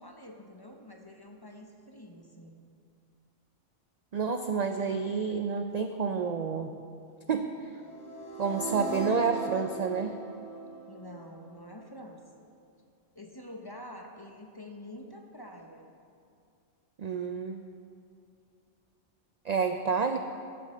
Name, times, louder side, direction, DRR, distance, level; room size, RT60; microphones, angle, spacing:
voice 1, 0.0-2.6 10.9-12.2 13.1-15.9, left 1 dB, 20° left, 2 dB, 0.7 m, -47 dB
voice 2, 4.1-6.7 7.3-7.5 8.4-10.1 17.0-17.7 19.4-20.2, right 5 dB, 55° right, 6 dB, 0.4 m, -29 dB
sound 1, 7.8-11.8, right 3 dB, 5° left, 3.2 m, -38 dB
13.0 x 6.8 x 6.5 m, 2.4 s
omnidirectional pair, 1.2 m